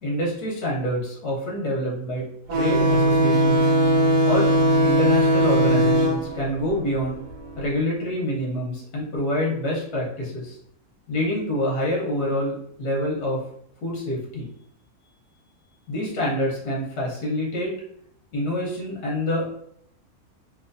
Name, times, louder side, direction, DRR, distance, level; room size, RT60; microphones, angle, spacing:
voice 1, 0.0-2.2 2.5-3.7 4.2-4.5 4.8-7.2 7.6-10.6 11.1-13.4 13.8-14.5 15.9-17.7 18.3-19.5, left 1 dB, 90° left, -4 dB, 1.5 m, -26 dB
sound 1, 2.5-7.6, equal, 70° right, 1.1 m, -20 dB
3.1 x 3.0 x 2.5 m, 0.71 s
omnidirectional pair, 1.6 m